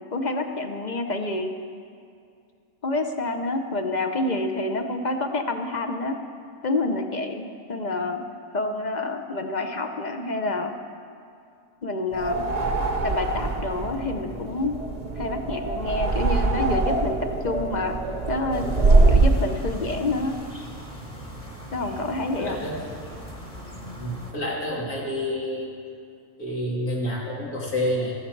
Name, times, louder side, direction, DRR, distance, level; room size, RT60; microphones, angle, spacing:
voice 1, 0.1-1.5 2.8-6.2 6.6-8.2 8.5-10.7 11.8-12.4 13.0-14.7 15.2-18.0 18.3-18.7 19.1-20.4 21.7-22.6, left 2 dB, 45° left, 6 dB, 0.6 m, -28 dB
sound 1, 12.1-19.4, right 3 dB, 35° right, 0.7 m, -23 dB
sound 2, 18.5-24.3, right 1 dB, 25° left, 1.6 m, -39 dB
voice 2, 22.4-22.8 24.0-25.7 26.4-28.1, left 1 dB, 85° left, -5 dB, 2.9 m, -28 dB
14.5 x 13.5 x 4.6 m, 2.4 s
omnidirectional pair, 1.5 m